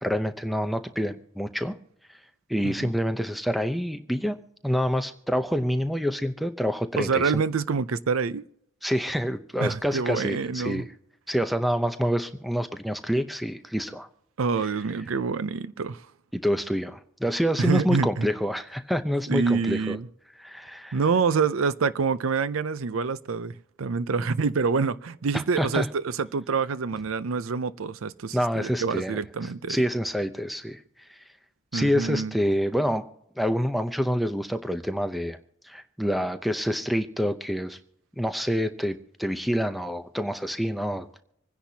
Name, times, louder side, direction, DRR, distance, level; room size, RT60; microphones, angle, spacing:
voice 1, 0.0-1.7 2.5-4.4 4.6-7.4 8.8-10.8 11.3-14.1 16.3-20.0 20.4-21.0 24.2-24.3 25.3-25.9 28.3-29.2 29.7-30.8 31.1-31.2 31.7-33.0 33.4-35.4 35.6-37.8 38.2-41.2, equal, ahead, 0.6 m, -27 dB
voice 2, 6.9-8.4 9.6-10.9 14.4-16.0 17.6-18.3 19.3-20.1 20.9-29.8 31.7-32.3, right 5 dB, 85° right, 0.5 m, -26 dB
26.0 x 10.0 x 2.8 m
head